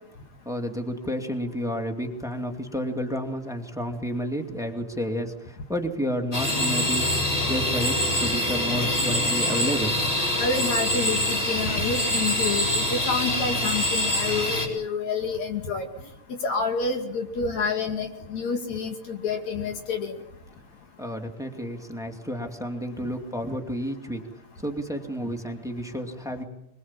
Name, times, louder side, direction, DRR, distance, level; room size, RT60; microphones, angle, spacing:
voice 1, 0.4-7.1 7.5-9.9 21.0-24.2 24.6-26.4, equal, ahead, 4 dB, 1.8 m, -30 dB
sound 1, 6.3-14.7, left 1 dB, 35° left, 5.2 m, -25 dB
voice 2, 10.4-15.9 16.3-20.2, left 4 dB, 55° left, 4 dB, 3.6 m, -28 dB
25.0 x 22.0 x 7.5 m, 0.81 s
omnidirectional pair, 4.0 m